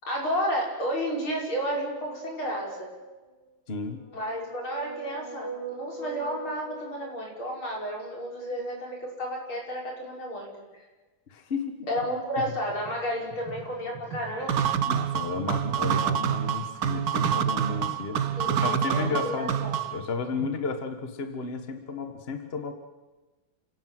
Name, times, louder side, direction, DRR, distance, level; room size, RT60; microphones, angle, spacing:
voice 1, 0.0-2.9 4.1-10.8 11.9-14.5 18.4-19.7, equal, 90° left, -1 dB, 6.1 m, -32 dB
sound 1, 1.4-3.0 3.8-7.7, right 4 dB, 15° left, 4.3 m, -41 dB
voice 2, 3.7-4.0 11.3-11.9 12.4-12.5 14.8-19.6 19.9-22.7, left 4 dB, 30° left, 7 dB, 1.7 m, -33 dB
sound 2, 12.6-20.7, right 8 dB, 90° right, 2.9 m, -44 dB
sound 3, 14.5-20.0, right 9 dB, 55° right, 1.3 m, -27 dB
28.5 x 17.5 x 7.8 m, 1.2 s
omnidirectional pair, 2.2 m